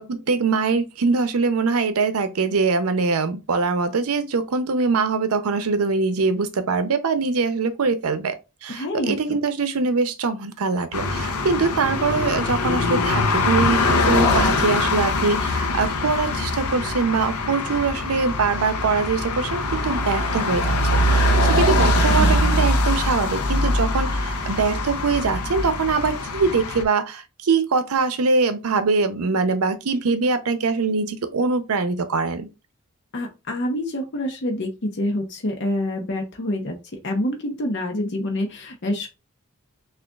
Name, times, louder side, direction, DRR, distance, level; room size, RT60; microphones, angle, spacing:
voice 1, 0.0-8.3 8.6-32.5, right 4 dB, 80° right, 0.6 m, -23 dB
voice 2, 8.7-9.4 21.8-21.9 22.2-22.3 33.1-36.8 37.0-39.1, left 1 dB, 55° left, 0.7 m, -27 dB
sound 1, 10.9-26.8, left 2 dB, 85° left, 0.6 m, -22 dB
6.1 x 2.4 x 2.3 m
head